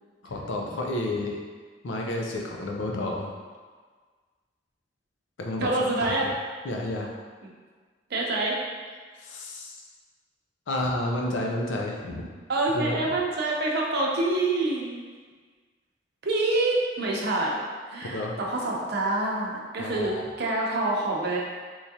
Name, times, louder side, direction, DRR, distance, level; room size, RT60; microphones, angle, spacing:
voice 1, 0.2-1.4 1.8-3.3 5.4-5.7 6.0-6.2 6.6-7.1 9.2-9.7 10.7-12.3 12.7-12.9 18.0-18.3 19.8-20.2, left 1 dB, 80° left, 0 dB, 0.5 m, -30 dB
voice 2, 5.6-6.3 7.4-7.5 8.1-8.6 12.5-15.0 16.2-17.6 17.9-21.4, right 2 dB, 60° right, -2 dB, 0.7 m, -26 dB
3.5 x 3.1 x 2.7 m, 1.5 s
head